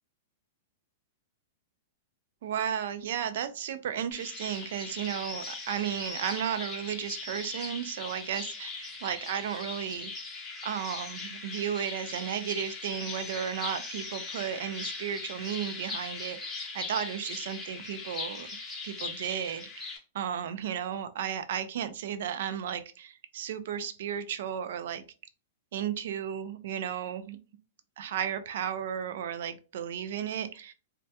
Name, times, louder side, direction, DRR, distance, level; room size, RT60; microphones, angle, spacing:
voice 1, 2.4-10.1 10.6-18.5 18.8-25.0 25.7-27.4 28.0-30.7, right 9 dB, 65° right, 11 dB, 0.3 m, -34 dB
sound 1, 4.1-20.0, left 4 dB, 20° left, 0.6 m, -40 dB
2.2 x 2.2 x 2.7 m, 0.34 s
hypercardioid pair, 150°, 0 cm